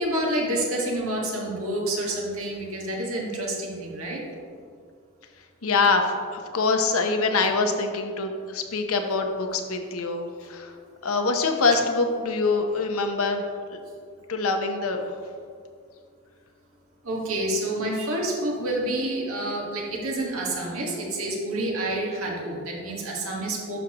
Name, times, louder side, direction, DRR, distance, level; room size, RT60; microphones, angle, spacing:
voice 1, 0.0-4.2 17.0-23.8, right 1 dB, 80° right, -2 dB, 1.7 m, -28 dB
voice 2, 5.6-10.7 11.0-13.4 14.3-15.1, left 3 dB, 85° left, 5 dB, 0.8 m, -24 dB
11.5 x 6.3 x 3.0 m, 2.2 s
head